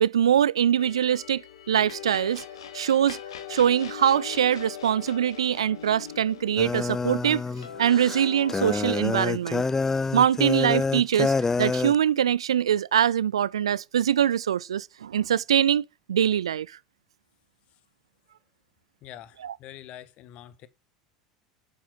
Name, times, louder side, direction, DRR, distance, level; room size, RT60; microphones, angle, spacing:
voice 1, 0.0-1.4 1.7-2.4 2.7-3.2 3.5-7.4 7.8-9.6 10.1-16.7 19.4-19.5, right 9 dB, 70° right, 0.6 m, -23 dB
sound 1, 0.8-8.9, left 8 dB, 65° left, 2.8 m, -41 dB
sound 2, 6.6-12.0, left 4 dB, 15° left, 0.7 m, -27 dB
voice 2, 19.0-20.7, left 12 dB, 45° left, 1.7 m, -45 dB
11.0 x 9.3 x 5.9 m
figure-of-eight pair, 75°, 3 cm